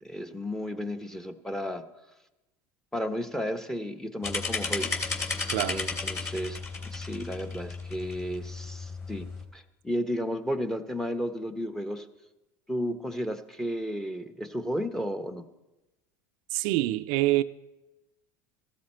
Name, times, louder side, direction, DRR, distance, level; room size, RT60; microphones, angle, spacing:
voice 1, 0.0-1.8 2.9-4.9 5.7-9.3 9.5-12.1 12.7-15.4, equal, 5° left, 0.9 m, -33 dB
sound 1, 4.2-9.4, left 4 dB, 25° left, 3.0 m, -34 dB
voice 2, 5.5-5.8 16.5-17.4, right 17 dB, 65° right, 0.5 m, -25 dB
15.0 x 12.5 x 4.4 m
supercardioid pair, 100°, 10 cm